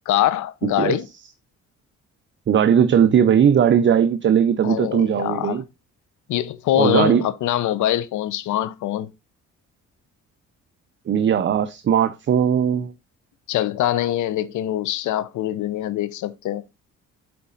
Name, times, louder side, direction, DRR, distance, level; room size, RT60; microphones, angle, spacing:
voice 1, 0.1-1.1 4.6-5.6 6.3-9.1 13.5-16.6, left 13 dB, 75° left, 0.7 m, -23 dB
voice 2, 0.6-1.0 2.5-5.6 6.8-7.2 11.1-12.9, right 8 dB, 40° right, 0.6 m, -18 dB
7.8 x 4.1 x 3.8 m
cardioid pair, 90°, 30 cm